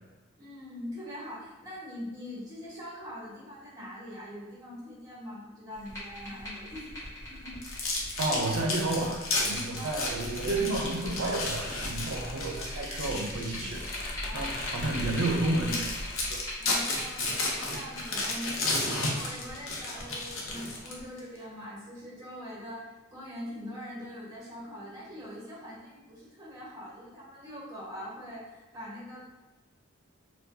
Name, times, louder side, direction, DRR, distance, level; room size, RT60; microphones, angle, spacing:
voice 1, 0.4-7.6 9.7-9.9 14.2-14.9 16.6-17.3 17.6-29.3, equal, 15° right, -6 dB, 1.2 m, -43 dB
sound 1, 5.7-21.0, left 1 dB, 15° left, 1.3 m, -42 dB
sound 2, 7.6-14.1 14.6-14.8 15.3-15.4 15.7-21.2, left 2 dB, 90° left, 0.7 m, -33 dB
voice 2, 8.2-13.8 14.3-15.9 16.3-16.4, right 2 dB, 85° right, 1 dB, 0.5 m, -31 dB
sound 3, 9.9-16.4, left 1 dB, 45° left, 0.6 m, -40 dB
4.5 x 2.2 x 2.6 m, 1.2 s
head